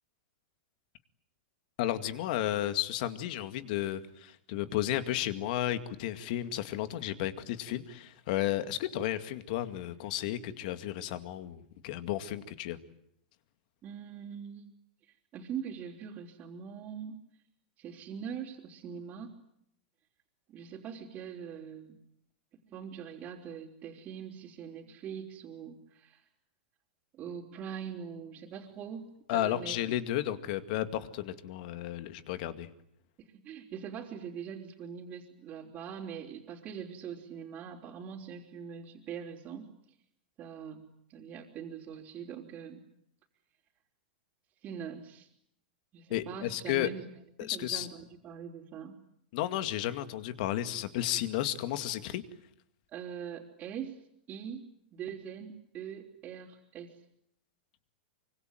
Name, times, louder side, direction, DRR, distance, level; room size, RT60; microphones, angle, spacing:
voice 1, 1.8-12.8 29.3-32.7 46.1-46.9 47.5-47.9 49.3-52.2, left 13 dB, 55° left, 11 dB, 2.2 m, -33 dB
voice 2, 13.8-14.7 15.3-17.2 17.8-19.3 20.5-22.0 22.7-26.2 27.1-29.8 33.2-39.7 40.4-42.8 44.6-45.3 45.9-47.0 47.4-49.0 52.9-54.0 54.3-56.9, right 7 dB, 30° right, -6 dB, 3.9 m, -42 dB
25.5 x 25.0 x 9.2 m, 0.73 s
hypercardioid pair, 140°, 5 cm